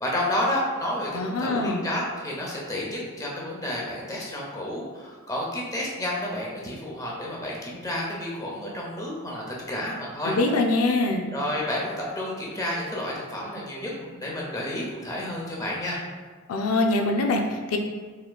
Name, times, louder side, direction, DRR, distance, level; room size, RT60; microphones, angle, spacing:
voice 1, 0.0-10.3 11.3-16.0, left 1 dB, 15° left, -3 dB, 0.7 m, -30 dB
voice 2, 1.1-1.9 10.2-11.3 16.5-17.8, left 2 dB, 85° left, 2 dB, 0.4 m, -24 dB
4.3 x 3.7 x 2.3 m, 1.4 s
head